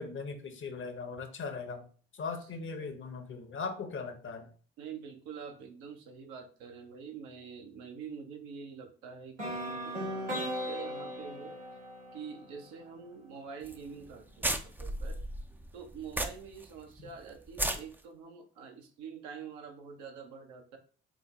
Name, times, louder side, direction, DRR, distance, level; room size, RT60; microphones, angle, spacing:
voice 1, 0.0-1.9 2.1-4.5 17.0-17.1, left 4 dB, 40° left, 6 dB, 0.7 m, -39 dB
voice 2, 4.8-11.6 12.1-15.2 15.7-20.8, right 6 dB, 70° right, 4 dB, 0.7 m, -46 dB
sound 1, 9.4-13.3, equal, 90° right, 1.1 m, -38 dB
sound 2, 13.6-13.8 14.1-14.2 14.4-16.6 17.0-17.1 17.5-17.8, right 1 dB, 5° right, 0.3 m, -33 dB
3.8 x 2.1 x 3.0 m, 0.41 s
figure-of-eight pair, 40°, 30 cm